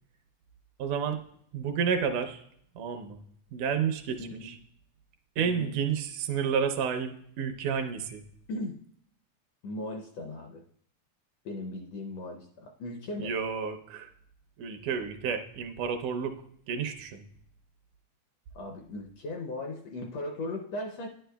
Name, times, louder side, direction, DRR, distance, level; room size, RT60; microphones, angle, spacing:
voice 1, 0.8-1.2 1.5-2.4 2.8-3.2 3.5-4.6 5.4-8.2 13.2-14.1 14.6-16.4 16.7-17.2, right 7 dB, 85° right, 6 dB, 2.2 m, -30 dB
voice 2, 4.2-4.5 5.4-5.7 8.5-8.8 9.6-10.6 11.4-13.4 18.5-21.1, left 1 dB, 75° left, 1 dB, 1.6 m, -37 dB
11.0 x 9.9 x 2.2 m, 0.67 s
omnidirectional pair, 3.5 m